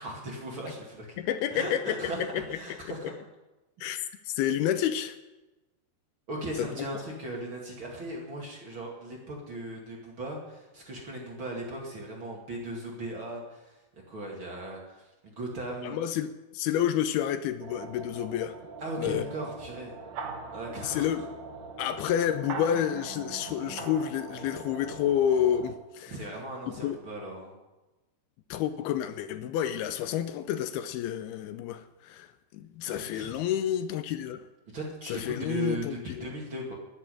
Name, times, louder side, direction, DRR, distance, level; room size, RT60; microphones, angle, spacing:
voice 1, 0.0-1.2 1.5-3.1 6.3-13.8 14.1-16.0 18.8-19.9 20.5-21.2 26.1-27.5 32.9-33.4 34.7-36.7, right 1 dB, 35° right, 2.4 m, -38 dB
voice 2, 1.2-3.1 3.8-5.2 6.6-6.9 15.8-18.6 19.0-19.3 20.8-21.3 21.8-26.2 26.8-27.0 28.5-34.4 35.0-36.3, left 10 dB, 80° left, 2.5 m, -30 dB
sound 1, 17.6-25.7, right 4 dB, 55° right, 2.4 m, -41 dB
13.5 x 7.3 x 10.0 m
omnidirectional pair, 4.6 m